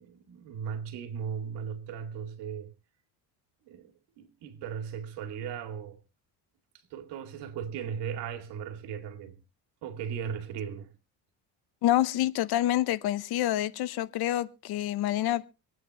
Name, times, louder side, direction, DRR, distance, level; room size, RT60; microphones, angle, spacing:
voice 1, 0.0-2.7 3.7-6.0 6.9-9.4 9.8-10.9, right 7 dB, 85° right, 2.4 m, -37 dB
voice 2, 11.8-15.5, left 13 dB, 70° left, 0.9 m, -27 dB
26.0 x 9.1 x 3.0 m
cardioid pair, 110°, 40 cm